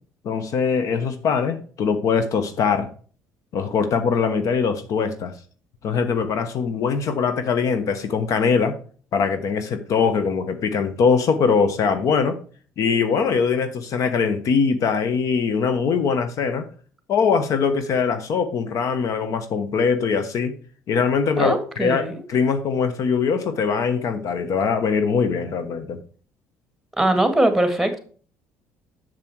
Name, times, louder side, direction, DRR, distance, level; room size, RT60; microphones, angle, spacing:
voice 1, 0.2-2.9 3.5-5.3 5.8-8.8 9.1-12.4 12.8-16.7 17.1-20.5 20.9-26.0, left 5 dB, 60° left, 10 dB, 1.0 m, -22 dB
voice 2, 21.4-22.1 27.0-28.0, right 1 dB, 5° right, 8 dB, 1.9 m, -21 dB
7.1 x 6.7 x 4.6 m, 0.43 s
supercardioid pair, 75°, 6 cm